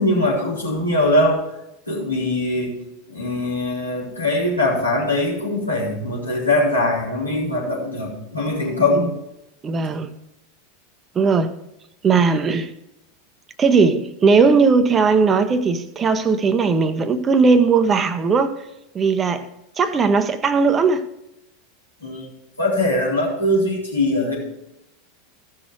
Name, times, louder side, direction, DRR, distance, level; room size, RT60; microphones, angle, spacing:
voice 1, 0.0-1.4 1.9-2.8 3.1-9.1 22.0-22.3 22.6-24.3, left 1 dB, 85° left, 3.9 m, -21 dB
voice 2, 9.6-10.1 11.1-11.5 12.0-12.7 13.6-18.6 18.9-19.5 19.8-21.1, right 4 dB, 25° right, 0.8 m, -18 dB
15.0 x 6.2 x 4.7 m
figure-of-eight pair, 85°, 0 cm